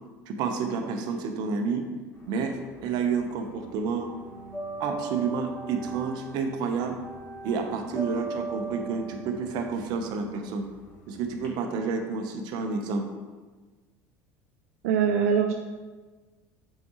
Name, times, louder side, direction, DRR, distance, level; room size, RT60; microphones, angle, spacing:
voice 1, 0.3-1.8 2.3-4.1 4.8-7.0 7.4-10.6 11.1-13.0, right 5 dB, 60° right, 4 dB, 0.9 m, -29 dB
sound 1, 2.2-3.3 3.6-11.5, right 2 dB, 25° left, 1.9 m, -39 dB
voice 2, 14.8-15.5, right 7 dB, 85° right, 4 dB, 0.4 m, -22 dB
6.9 x 4.8 x 3.1 m, 1.3 s
supercardioid pair, 100°, 8 cm